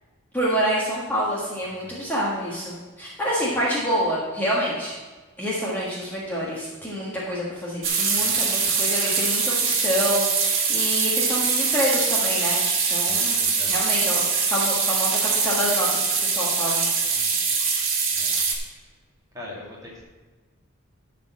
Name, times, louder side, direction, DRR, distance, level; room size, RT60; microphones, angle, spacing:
voice 1, 0.3-4.9 5.4-12.6 12.9-13.4 13.6-14.2 14.5-16.8, equal, 10° left, -7 dB, 1.6 m, -27 dB
sound 1, 7.8-18.6, right 5 dB, 60° right, 1.7 m, -23 dB
voice 2, 8.1-8.5 13.0-13.8 17.1-17.5 18.1-18.4 19.3-20.0, left 2 dB, 15° right, -4 dB, 2.2 m, -43 dB
12.0 x 4.2 x 7.3 m, 1.3 s
head